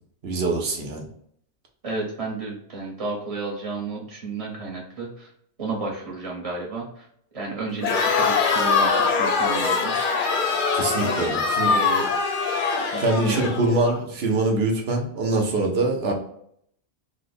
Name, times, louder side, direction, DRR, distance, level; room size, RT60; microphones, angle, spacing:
voice 1, 0.2-1.0 10.7-11.7 13.0-16.1, right 2 dB, 65° right, 2 dB, 0.9 m, -24 dB
voice 2, 1.8-5.3 5.6-7.1 7.3-9.9 11.0-11.1 11.7-12.1 12.9-13.5, right 3 dB, 30° right, -3 dB, 1.0 m, -32 dB
Crowd, 7.8-14.0, left 5 dB, 55° left, 0.6 m, -23 dB
3.0 x 2.1 x 4.1 m, 0.69 s
omnidirectional pair, 1.2 m